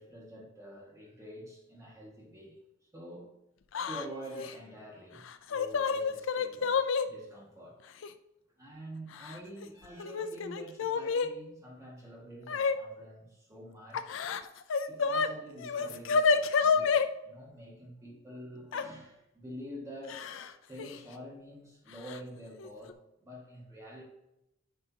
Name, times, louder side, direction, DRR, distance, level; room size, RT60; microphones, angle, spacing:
voice 1, 0.0-3.3 3.8-7.8 8.6-14.0 14.9-20.4 20.7-24.0, equal, 15° right, -3 dB, 1.7 m, -47 dB
Yell / Crying sobbing, 3.7-4.0 4.3-4.5 5.3-7.1 8.0-8.1 9.1-9.7 10.0-11.3 12.5-12.8 13.9-15.3 15.6-17.1 18.7-18.8 20.1-20.5 20.8-20.9 22.1-22.2 22.6-22.9, left 5 dB, 70° left, 0.4 m, -29 dB
9.9 x 5.2 x 2.8 m, 0.90 s
head